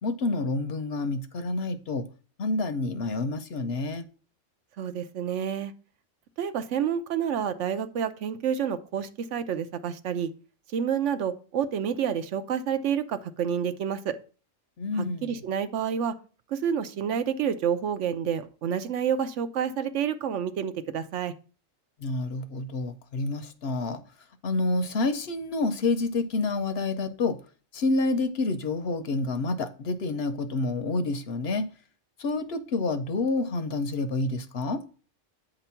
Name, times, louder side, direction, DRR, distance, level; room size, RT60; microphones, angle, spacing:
voice 1, 0.0-2.1 2.4-4.0 14.8-15.4 22.0-24.0 24.4-27.4 27.7-31.7 32.2-34.8, left 3 dB, 60° left, 0.8 m, -28 dB
voice 2, 4.8-5.7 6.4-10.3 10.7-14.2 15.0-16.1 16.5-21.3, right 8 dB, 70° right, 0.9 m, -29 dB
8.8 x 3.0 x 5.5 m
omnidirectional pair, 1.3 m